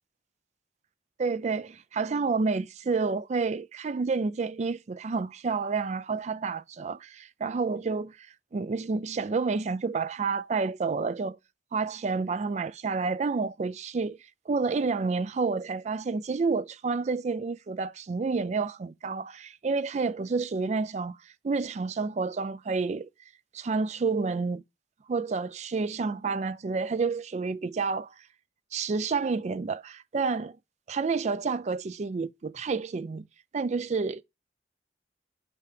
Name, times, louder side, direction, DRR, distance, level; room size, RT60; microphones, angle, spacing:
voice 1, 1.2-8.3 8.5-11.4 11.7-14.2 14.5-21.2 21.4-23.1 23.5-24.6 25.1-28.1 28.7-30.6 30.9-33.3 33.5-34.2, right 4 dB, 40° right, 0.3 m, -29 dB
5.9 x 4.6 x 5.0 m
head